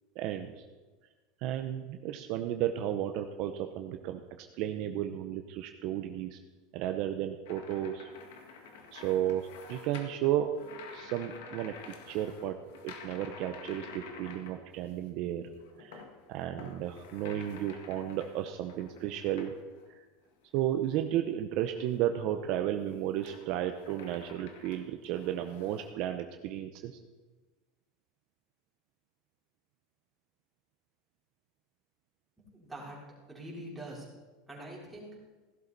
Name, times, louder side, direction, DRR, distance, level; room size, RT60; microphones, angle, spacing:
voice 1, 0.2-0.6 1.4-6.4 6.7-8.1 8.9-10.5 10.9-12.6 12.8-15.5 15.8-16.0 16.3-19.5 19.9-20.0 20.5-26.9, right 11 dB, 50° right, 6 dB, 0.7 m, -33 dB
sound 1, 7.5-15.1 15.4-19.9 20.4-21.1 21.6-25.9, left 5 dB, 80° left, 1.8 m, -50 dB
voice 2, 32.4-33.0 33.3-34.1 34.5-35.1, right 1 dB, 5° right, -5 dB, 3.8 m, -44 dB
16.0 x 11.5 x 4.1 m, 1.3 s
supercardioid pair, 150°, 0 cm